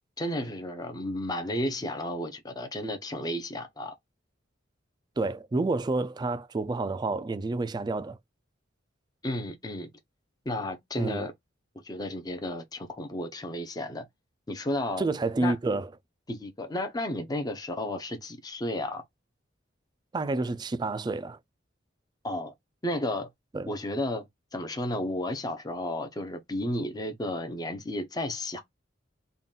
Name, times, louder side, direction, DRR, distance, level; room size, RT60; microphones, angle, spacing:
voice 1, 0.2-3.9 9.2-9.9 10.5-11.3 11.8-14.1 14.5-15.1 15.4-15.5 16.3-19.0 22.2-22.5 22.8-23.3 23.7-24.2 24.5-28.6, left 1 dB, 20° left, 0.5 m, -32 dB
voice 2, 5.2-8.2 11.0-11.3 15.0-15.9 20.1-21.4 23.5-23.7, right 3 dB, 20° right, 0.3 m, -29 dB
3.9 x 2.3 x 3.6 m
head